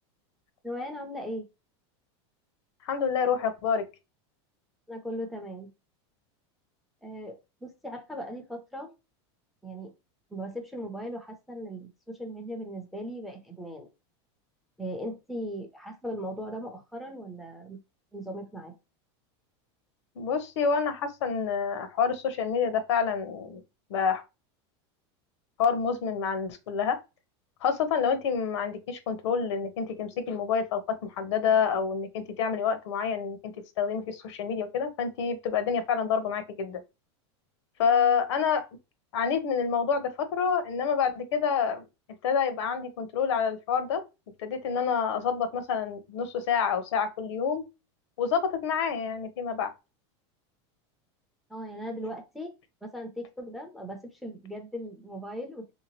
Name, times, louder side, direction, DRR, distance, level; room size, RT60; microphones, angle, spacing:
voice 1, 0.6-1.5 4.9-5.7 7.0-8.9 9.6-9.9 10.3-13.9 14.8-17.8 18.1-18.7 51.5-52.5 52.8-55.7, equal, ahead, 0.4 m, -38 dB
voice 2, 2.8-3.9 20.2-23.6 23.9-24.2 25.6-27.0 27.6-36.8 37.8-38.6 39.1-41.9 42.2-44.0 44.4-47.7 48.2-49.7, left 6 dB, 85° left, 0.8 m, -28 dB
3.3 x 2.8 x 2.9 m
supercardioid pair, 175°, 15 cm